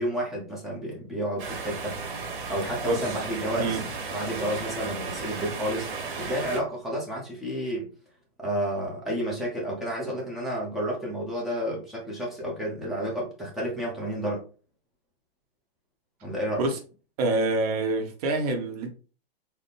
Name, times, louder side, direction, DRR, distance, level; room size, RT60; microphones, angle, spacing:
voice 1, 0.0-2.0 2.5-3.8 4.1-7.9 8.4-14.4 16.2-16.6, equal, ahead, 0.7 m, -31 dB
sound 1, 1.4-6.6, right 4 dB, 55° right, 1.2 m, -34 dB
voice 2, 2.8-3.2 3.6-3.8 16.6-16.8 17.2-18.9, right 2 dB, 40° right, 0.9 m, -26 dB
4.1 x 2.1 x 3.5 m
hypercardioid pair, 155°, 30 cm